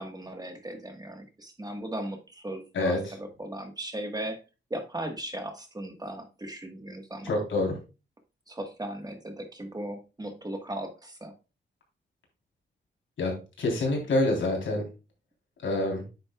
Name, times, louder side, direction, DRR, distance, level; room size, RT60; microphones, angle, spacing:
voice 1, 0.0-4.4 4.7-7.4 8.5-11.3, right 1 dB, 20° right, 5 dB, 1.4 m, -37 dB
voice 2, 7.2-7.8 13.2-13.3 13.6-14.8 15.6-16.0, left 2 dB, 85° left, -1 dB, 3.6 m, -26 dB
9.3 x 6.8 x 2.3 m, 0.30 s
wide cardioid pair, 100°, 20 cm